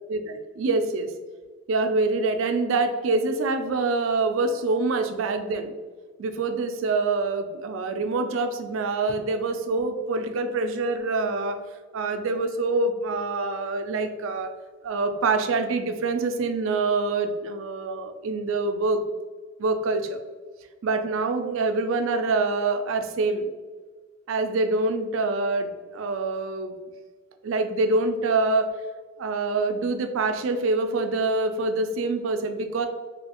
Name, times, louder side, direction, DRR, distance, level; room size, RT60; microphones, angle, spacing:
voice 1, 0.1-1.1 1.7-5.7 6.2-11.6 11.9-14.5 14.8-19.0 19.6-20.2 20.8-23.5 24.3-26.7 27.4-28.8 29.2-32.9, right 3 dB, 70° right, 8 dB, 0.4 m, -25 dB
3.1 x 2.7 x 2.9 m, 1.4 s
head